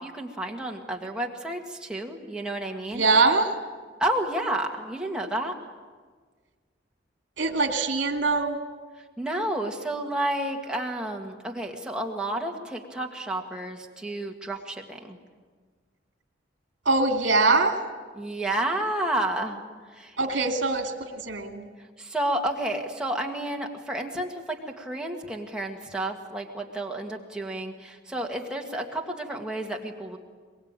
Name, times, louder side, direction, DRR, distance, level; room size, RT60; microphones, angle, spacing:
voice 1, 0.0-3.1 4.0-5.5 9.2-15.2 18.2-19.6 19.9-20.4 22.0-30.2, right 1 dB, 5° right, 0 dB, 1.9 m, -31 dB
voice 2, 2.9-3.5 7.4-8.6 16.8-17.7 20.2-21.7, right 3 dB, 75° right, 5 dB, 2.7 m, -23 dB
23.0 x 22.0 x 9.0 m, 1.5 s
head